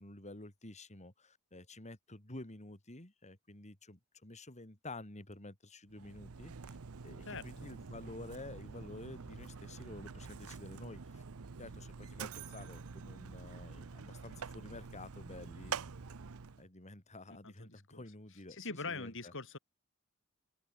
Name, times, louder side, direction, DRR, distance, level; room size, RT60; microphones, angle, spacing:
voice 1, 0.0-6.8 7.0-11.2 11.6-15.8 16.6-19.3, left 2 dB, 35° left, 3.3 m, -50 dB
Mechanisms, 5.9-16.7, right 5 dB, 75° right, 0.7 m, -47 dB
voice 2, 7.2-7.7 17.3-18.0 18.5-19.6, left 4 dB, 60° left, 6.6 m, -44 dB
head